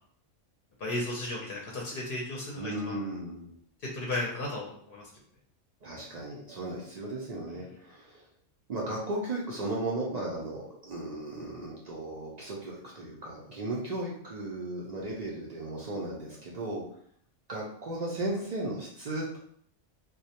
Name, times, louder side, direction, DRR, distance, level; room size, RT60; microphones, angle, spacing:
voice 1, 0.8-3.0 3.9-5.0, left 2 dB, 60° left, -2 dB, 0.7 m, -34 dB
voice 2, 2.6-3.5 5.8-8.2 8.7-16.8 17.5-19.4, right 2 dB, 75° right, -4 dB, 0.3 m, -36 dB
2.3 x 2.0 x 2.7 m, 0.63 s
omnidirectional pair, 1.3 m